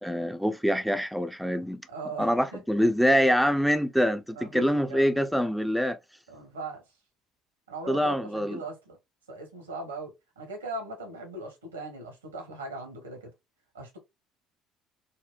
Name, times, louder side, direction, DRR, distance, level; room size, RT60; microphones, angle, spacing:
voice 1, 0.0-1.8 2.2-6.0 7.9-8.6, equal, ahead, 0.5 m, -25 dB
voice 2, 1.9-2.6 4.4-5.2 6.3-6.8 7.7-9.0 9.3-13.3 13.7-14.0, right 2 dB, 85° right, 1.0 m, -39 dB
4.2 x 2.1 x 2.3 m
figure-of-eight pair, 55°, 0 cm